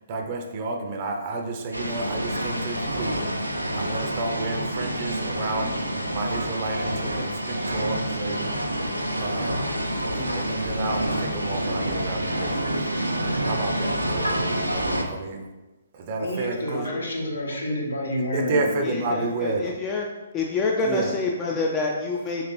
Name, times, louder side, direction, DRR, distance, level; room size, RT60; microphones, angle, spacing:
voice 1, 0.0-5.8 6.1-8.5 9.1-9.6 10.1-12.8 13.4-15.5 15.9-16.9 18.3-19.7 20.8-21.1, right 2 dB, 35° right, 2 dB, 0.5 m, -31 dB
sound 1, 1.7-15.0, right 1 dB, 90° right, 0.5 m, -27 dB
voice 2, 16.2-18.8, left 1 dB, 70° left, -2 dB, 1.0 m, -29 dB
voice 3, 16.7-17.0 18.8-20.0 20.3-22.4, left 3 dB, 20° left, -1 dB, 0.3 m, -27 dB
3.8 x 3.1 x 2.9 m, 1.1 s
figure-of-eight pair, 130°, 0 cm